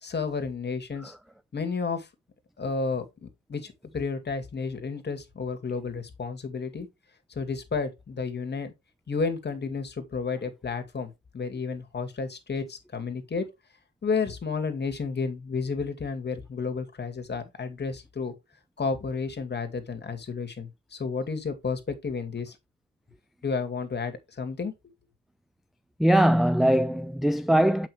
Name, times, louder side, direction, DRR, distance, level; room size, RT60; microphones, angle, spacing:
voice 1, 0.0-1.1 1.5-2.1 2.6-6.9 7.4-8.7 9.1-13.5 14.0-18.3 18.8-22.5 23.4-24.7, left 4 dB, 35° left, 2.3 m, -31 dB
voice 2, 26.0-27.9, right 1 dB, ahead, 0.4 m, -21 dB
8.1 x 5.8 x 3.4 m
cardioid pair, 90°, 30 cm